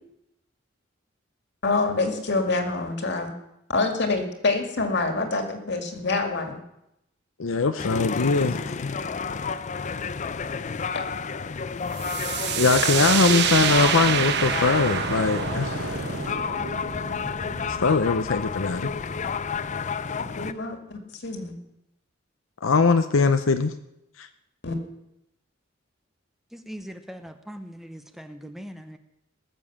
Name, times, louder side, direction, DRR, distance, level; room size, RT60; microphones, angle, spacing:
voice 1, 1.6-3.3 3.7-6.6 17.2-17.3 20.4-21.5 24.6-24.8, left 3 dB, 60° left, 5 dB, 2.1 m, -26 dB
voice 2, 7.4-8.9 12.6-16.0 17.8-18.9 22.6-23.7 24.2-24.3, left 4 dB, 80° left, 8 dB, 0.7 m, -22 dB
sound 1, 7.8-20.5, left 5 dB, 40° left, 0.5 m, -31 dB
sound 2, 12.0-19.6, right 7 dB, 60° right, 0.9 m, -28 dB
voice 3, 26.5-29.0, equal, ahead, 8 dB, 0.7 m, -40 dB
19.0 x 7.1 x 7.2 m, 0.85 s
head